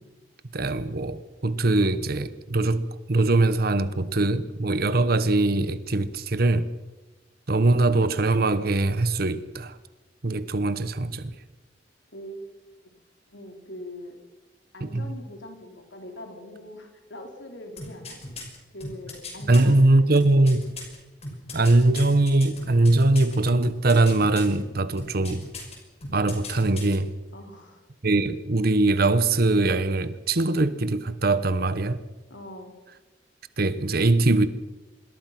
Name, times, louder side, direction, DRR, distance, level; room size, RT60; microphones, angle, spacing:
voice 1, 0.5-6.7 7.5-9.8 10.2-11.3 14.8-15.0 19.5-20.6 21.5-25.5 26.1-27.1 28.0-32.0 33.6-34.5, right 2 dB, 55° right, 1.1 m, -22 dB
voice 2, 12.1-12.5 13.3-14.2 14.7-18.2 18.7-20.1 20.4-20.5 27.3-27.9 32.3-32.8, left 1 dB, 90° left, 4.1 m, -42 dB
sound 1, 17.8-19.6 20.2-23.4 23.6-24.6 25.0-25.8 26.0-27.0 27.3-27.4, left 2 dB, 35° left, 6.0 m, -37 dB
26.0 x 21.5 x 6.0 m
head